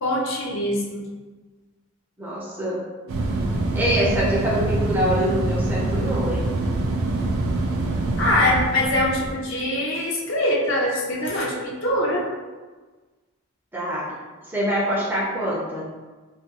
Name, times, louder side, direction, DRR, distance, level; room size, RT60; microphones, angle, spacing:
voice 1, 0.0-1.1 8.2-12.3, left 1 dB, 60° left, -2 dB, 0.5 m, -23 dB
voice 2, 2.2-2.8 3.7-6.5 13.7-14.2 14.4-15.9, equal, 10° right, -6 dB, 0.4 m, -25 dB
sound 1, 3.1-9.4, right 2 dB, 80° right, 0.4 m, -25 dB
2.4 x 2.2 x 2.7 m, 1.3 s
head